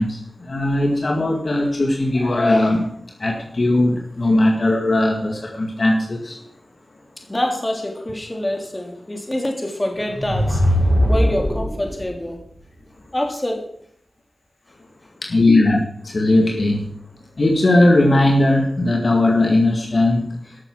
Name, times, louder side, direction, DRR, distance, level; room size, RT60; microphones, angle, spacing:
voice 1, 0.0-6.4 15.2-16.9 17.4-20.2, left 2 dB, 55° left, 1 dB, 2.0 m, -18 dB
voice 2, 7.3-10.6 11.1-12.5 13.1-13.7, left 1 dB, 25° left, 2 dB, 3.1 m, -25 dB
sound 1, 10.0-12.0, equal, 5° left, 4.9 m, -19 dB
13.0 x 6.9 x 6.2 m, 0.65 s
cardioid pair, 45°, 0 cm